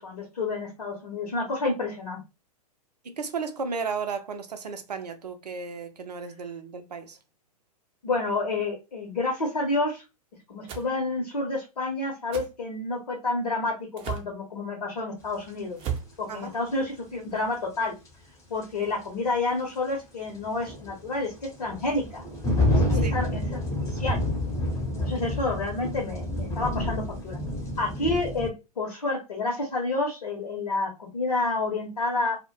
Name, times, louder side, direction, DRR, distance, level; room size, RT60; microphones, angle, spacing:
voice 1, 0.0-2.2 8.0-10.0 10.5-15.8 16.2-18.0 18.5-22.2 22.7-24.2 25.0-27.4 27.8-32.4, left 2 dB, 75° left, 0.8 m, -29 dB
voice 2, 3.0-7.2 16.3-16.5 23.0-23.1, right 5 dB, 85° right, 0.6 m, -34 dB
sound 1, 10.7-10.9 12.3-12.5 14.0-14.3 15.8-16.1, right 8 dB, 30° right, 0.5 m, -33 dB
sound 2, 15.5-15.6 18.1-18.2 18.6-18.7 20.3-28.5, left 1 dB, 15° left, 0.7 m, -28 dB
2.1 x 2.0 x 3.0 m
figure-of-eight pair, 105°, 20 cm